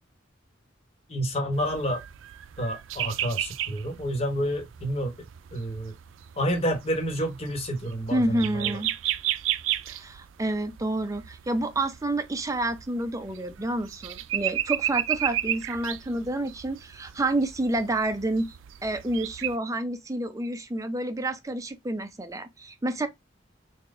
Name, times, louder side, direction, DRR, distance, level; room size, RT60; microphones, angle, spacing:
voice 1, 1.1-2.0 2.6-5.9 6.4-8.8, equal, 30° left, 1.1 m, -29 dB
sound 1, 1.5-19.6, right 12 dB, 80° right, 0.3 m, -33 dB
voice 2, 8.1-8.9 9.9-18.6 18.8-23.1, right 1 dB, 15° right, 0.5 m, -29 dB
4.0 x 2.2 x 3.6 m
head